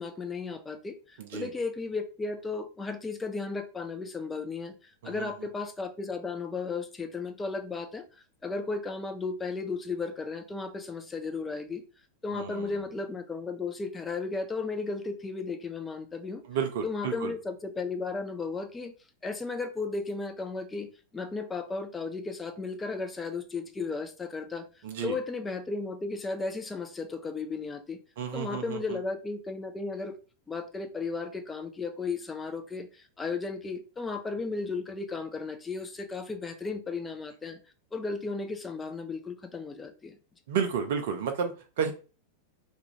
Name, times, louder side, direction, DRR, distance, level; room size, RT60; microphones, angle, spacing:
voice 1, 0.0-8.0 8.4-11.8 12.2-16.4 16.8-18.9 19.2-20.9 21.1-24.7 25.0-28.0 28.3-30.1 30.5-37.6 37.9-40.2, left 4 dB, 15° left, 0.4 m, -35 dB
voice 2, 1.2-1.5 5.0-5.3 12.3-12.7 16.5-17.3 24.8-25.2 28.2-29.0 40.5-41.9, right 7 dB, 55° right, 0.4 m, -32 dB
2.4 x 2.2 x 2.9 m
figure-of-eight pair, 90°, 0 cm